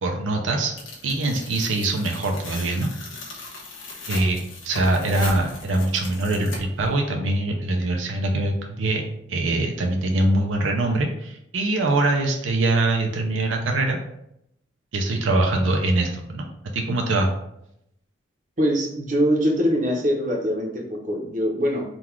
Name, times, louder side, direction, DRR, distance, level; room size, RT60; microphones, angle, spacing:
voice 1, 0.0-0.7 1.0-2.9 4.1-9.0 9.3-14.0 14.9-16.4 16.7-17.3, right 2 dB, 75° right, 2 dB, 0.5 m, -23 dB
Tearing, 0.8-6.9, left 3 dB, 85° left, 1.0 m, -38 dB
voice 2, 18.6-21.8, equal, 40° right, 0 dB, 0.7 m, -23 dB
3.8 x 2.3 x 4.4 m, 0.80 s
head